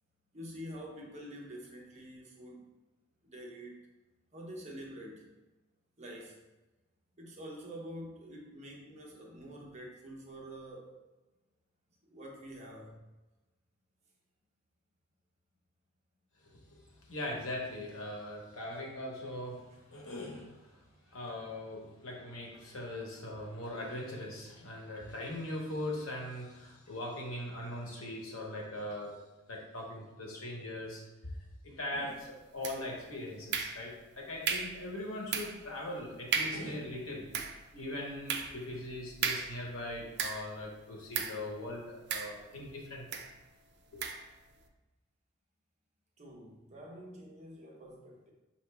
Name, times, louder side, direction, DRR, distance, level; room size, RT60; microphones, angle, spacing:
voice 1, 0.3-2.6 3.2-3.8 4.3-5.3 6.0-6.4 7.1-11.0 12.1-13.0 19.7-19.8 46.2-48.3, equal, 35° right, -2 dB, 0.9 m, -47 dB
voice 2, 17.0-20.8 21.1-29.1 29.5-31.3 31.6-37.3 37.7-43.1, left 1 dB, 85° left, -1 dB, 1.1 m, -40 dB
sound 1, 32.6-33.0 33.5-34.1 34.5-34.8 35.3-35.7 36.0-36.1 36.3-36.7 37.1-40.6 41.1-41.5 42.1-42.7 43.1-43.3 44.0-44.3, right 6 dB, 55° right, 0.4 m, -35 dB
5.7 x 2.8 x 3.3 m, 1.1 s
head